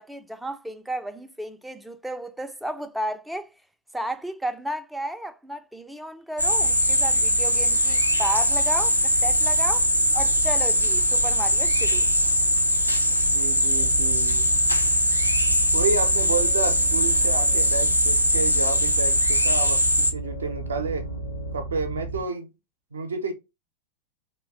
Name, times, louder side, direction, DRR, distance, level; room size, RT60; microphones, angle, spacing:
voice 1, 0.0-3.5 3.9-9.9 10.1-12.1, right 1 dB, 5° right, 0.3 m, -33 dB
sound 1, 6.4-20.1, equal, 90° left, 0.3 m, -21 dB
voice 2, 13.2-14.5 15.7-21.1 21.5-22.5 22.9-23.3, right 4 dB, 70° right, 0.5 m, -30 dB
sound 2, 13.8-22.2, right 2 dB, 65° left, 0.7 m, -34 dB
2.8 x 2.2 x 3.4 m
figure-of-eight pair, 90°, 0 cm